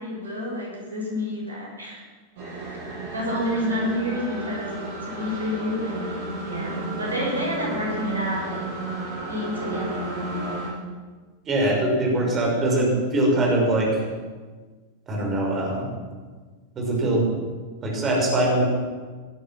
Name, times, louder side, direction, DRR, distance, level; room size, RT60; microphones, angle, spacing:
voice 1, 0.0-2.0 3.1-4.7 5.0-8.7 9.3-10.7, left 1 dB, 75° right, -2 dB, 6.4 m, -29 dB
sound 1, 2.4-10.7, right 3 dB, 55° right, 7.0 m, -33 dB
voice 2, 11.5-14.0 15.1-15.9 16.8-17.3 17.8-18.6, right 1 dB, 25° right, -2 dB, 5.5 m, -22 dB
17.5 x 13.5 x 6.1 m, 1.4 s
figure-of-eight pair, 90°, 0 cm